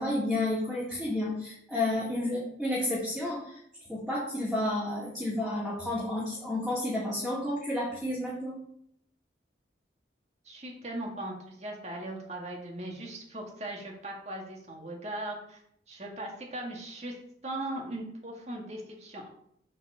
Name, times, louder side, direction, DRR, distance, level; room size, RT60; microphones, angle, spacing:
voice 1, 0.0-3.6 3.9-8.6, left 1 dB, ahead, -10 dB, 2.5 m, -31 dB
voice 2, 10.4-15.6 15.9-17.1 17.4-19.3, right 1 dB, 40° right, 0 dB, 1.9 m, -39 dB
8.0 x 4.6 x 6.8 m, 0.70 s
head